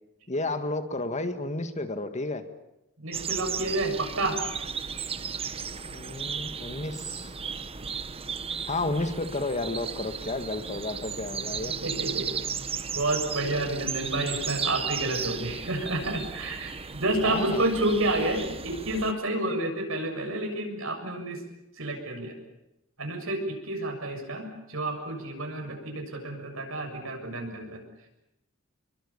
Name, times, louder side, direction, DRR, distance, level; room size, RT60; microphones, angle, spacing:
voice 1, 0.3-2.5 5.9-7.3 8.7-11.7 17.2-17.6, left 2 dB, 35° left, 8 dB, 1.9 m, -31 dB
voice 2, 3.0-4.4 11.8-12.3 12.9-21.4 21.8-22.4 23.0-27.8, right 1 dB, 80° right, 3 dB, 7.2 m, -30 dB
sound 1, 3.1-19.1, right 6 dB, 30° right, 0.9 m, -35 dB
28.5 x 23.5 x 7.2 m, 0.90 s
head